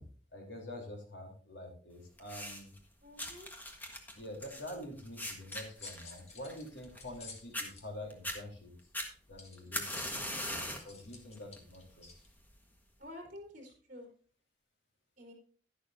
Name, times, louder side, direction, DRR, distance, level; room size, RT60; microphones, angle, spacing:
voice 1, 0.3-2.7 4.1-8.7 9.3-12.1, left 1 dB, 75° left, 1 dB, 3.6 m, -46 dB
sound 1, 2.2-2.8 3.2-7.2 7.5-7.7 8.1-8.4 8.9-10.9 11.4-11.7 12.5-12.6, left 1 dB, 10° left, 1.5 m, -40 dB
voice 2, 3.0-3.5 13.0-14.1 15.2-15.3, left 1 dB, 45° right, 0 dB, 3.9 m, -49 dB
sound 2, 5.5-7.9 9.4-12.3, left 4 dB, 35° left, 2.0 m, -52 dB
11.5 x 11.0 x 2.7 m, 0.44 s
head